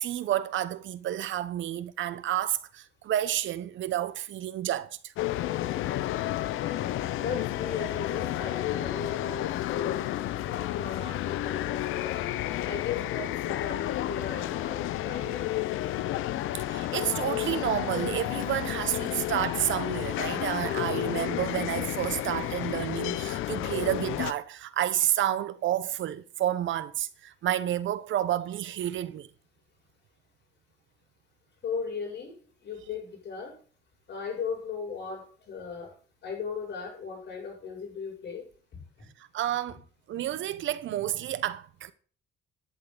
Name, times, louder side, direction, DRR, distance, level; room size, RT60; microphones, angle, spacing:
voice 1, 0.0-5.1 16.5-29.3 39.3-39.8 40.1-41.9, right 12 dB, 75° right, 1.0 m, -30 dB
sound 1, 5.2-24.3, left 14 dB, 90° left, 0.8 m, -31 dB
voice 2, 7.2-10.1 10.5-12.1 12.7-15.7 31.6-32.3 32.6-33.6 34.1-35.9 36.2-38.5, left 6 dB, 60° left, 7.5 m, -36 dB
10.5 x 10.5 x 4.0 m
cardioid pair, 90°, 20 cm